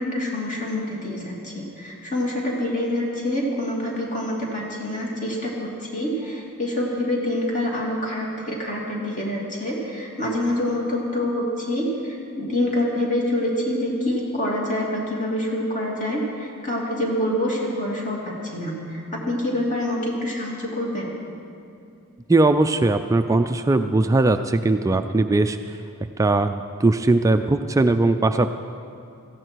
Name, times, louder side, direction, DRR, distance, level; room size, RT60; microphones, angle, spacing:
voice 1, 0.0-11.9 12.4-19.0 19.3-21.1, left 1 dB, 35° left, -3 dB, 3.0 m, -26 dB
voice 2, 22.3-25.6 26.2-26.5 26.8-28.5, right 2 dB, 15° right, 7 dB, 0.3 m, -19 dB
17.5 x 15.0 x 4.6 m, 2.5 s
head